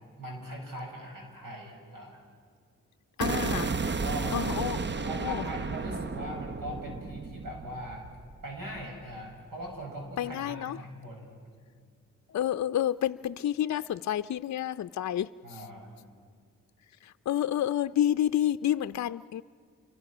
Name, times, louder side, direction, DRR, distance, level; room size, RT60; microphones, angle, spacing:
voice 1, 0.2-2.2 4.0-4.4 5.1-8.1 8.4-11.6 15.4-15.9, equal, 85° right, 0 dB, 7.2 m, -41 dB
voice 2, 3.2-3.8 4.3-5.4 10.2-10.8 12.3-15.6 17.0-19.4, left 11 dB, 60° left, 10 dB, 0.5 m, -29 dB
sound 1, 3.2-9.2, right 4 dB, 35° right, 0.8 m, -33 dB
29.5 x 23.5 x 6.1 m, 2.1 s
cardioid pair, 50°, 33 cm